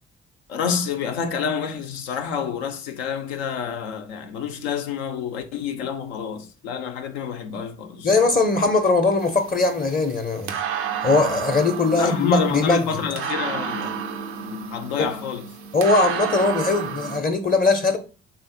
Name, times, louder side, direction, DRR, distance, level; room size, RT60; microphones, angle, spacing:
voice 1, 0.5-8.1 11.9-14.0 14.5-15.4, left 6 dB, 85° left, 0.5 m, -28 dB
voice 2, 8.0-10.6 11.0-13.0 15.0-15.1 15.7-18.0, left 3 dB, 25° left, 0.5 m, -20 dB
sound 1, 9.2-17.2, right 7 dB, 85° right, 0.5 m, -31 dB
3.4 x 2.5 x 2.5 m
hypercardioid pair, 45°, 32 cm